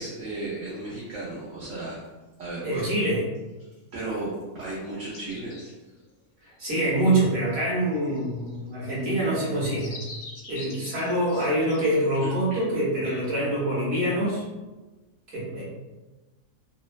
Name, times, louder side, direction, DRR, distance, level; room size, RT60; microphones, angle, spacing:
voice 1, 0.0-2.1 2.4-2.9 3.9-5.7 11.3-11.4 12.2-12.3 13.0-13.2, right 2 dB, 70° right, -7 dB, 1.0 m, -34 dB
voice 2, 2.6-3.2 6.6-9.9 10.5-14.4 15.3-15.6, right 1 dB, 50° right, -7 dB, 1.2 m, -25 dB
sound 1, 5.1-5.9 8.1-12.2, left 3 dB, 80° left, 1.1 m, -44 dB
2.9 x 2.1 x 2.4 m, 1.2 s
omnidirectional pair, 1.6 m